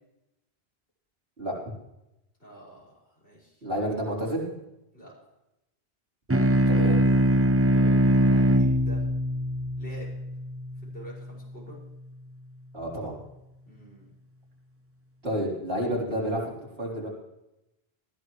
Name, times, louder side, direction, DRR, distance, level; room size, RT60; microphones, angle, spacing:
voice 1, 2.4-3.6 4.9-5.1 7.7-9.1 9.8-10.1 10.8-11.8 13.7-14.1, equal, 90° left, -4 dB, 6.5 m, -46 dB
voice 2, 3.6-4.4 6.5-7.0 12.7-13.2 15.2-16.5 16.8-17.1, equal, 70° right, -4 dB, 4.7 m, -29 dB
sound 1, 6.3-11.2, right 1 dB, 15° right, 0.7 m, -22 dB
19.5 x 15.5 x 3.3 m, 0.91 s
omnidirectional pair, 1.1 m